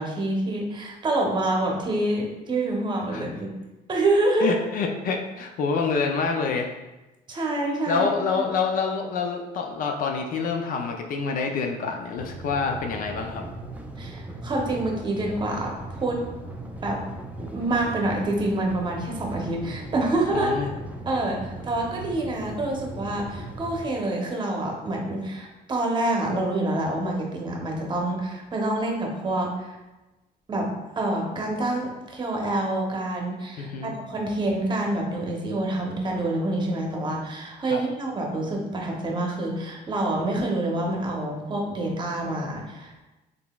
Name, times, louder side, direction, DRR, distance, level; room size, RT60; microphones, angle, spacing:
voice 1, 0.0-3.5 3.9-4.6 7.3-8.1 8.3-8.4 14.0-16.2 16.8-17.0 17.5-20.5 21.1-29.8 30.5-30.7 31.0-43.0, right 2 dB, 25° right, 0 dB, 0.8 m, -27 dB
voice 2, 4.4-6.7 7.3-7.4 7.9-13.4 20.3-20.7 33.6-33.9 37.7-37.8, left 5 dB, 55° left, 4 dB, 0.4 m, -27 dB
sound 1, 12.2-23.9, right 2 dB, 10° right, 0.4 m, -38 dB
3.8 x 3.4 x 2.3 m, 1.1 s
cardioid pair, 110°, 17 cm